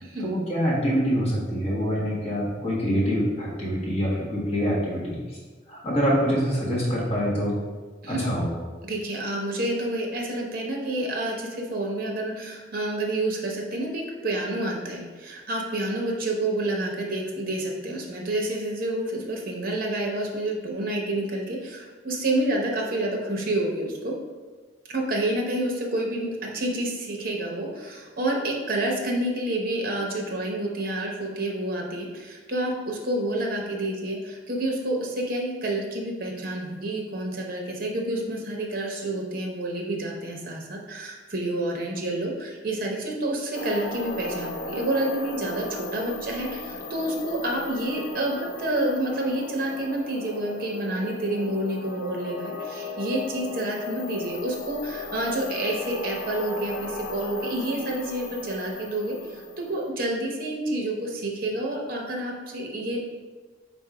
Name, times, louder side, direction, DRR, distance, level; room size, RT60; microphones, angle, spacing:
voice 1, 0.2-5.4 5.7-7.5 8.1-8.5, equal, 35° left, -8 dB, 1.5 m, -25 dB
voice 2, 8.9-24.2 24.9-63.1, right 1 dB, 50° right, 0 dB, 0.8 m, -29 dB
sound 1, 43.5-59.9, left 2 dB, 70° left, 0.6 m, -36 dB
4.1 x 2.6 x 4.7 m, 1.4 s
head